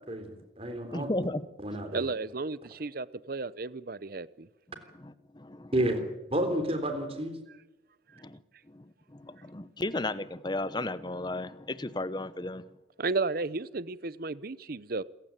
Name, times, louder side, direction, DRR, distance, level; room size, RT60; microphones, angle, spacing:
voice 1, 0.1-1.1 1.6-2.0 5.7-6.0 6.3-7.4, right 1 dB, 30° right, 8 dB, 3.7 m, -30 dB
voice 2, 0.9-1.4 5.0-5.7 8.2-8.4 8.7-8.8 9.1-12.6, left 2 dB, 25° left, 15 dB, 0.9 m, -34 dB
voice 3, 1.9-4.5 13.0-15.0, right 3 dB, 50° right, 18 dB, 0.8 m, -33 dB
27.5 x 15.5 x 9.0 m, 0.98 s
head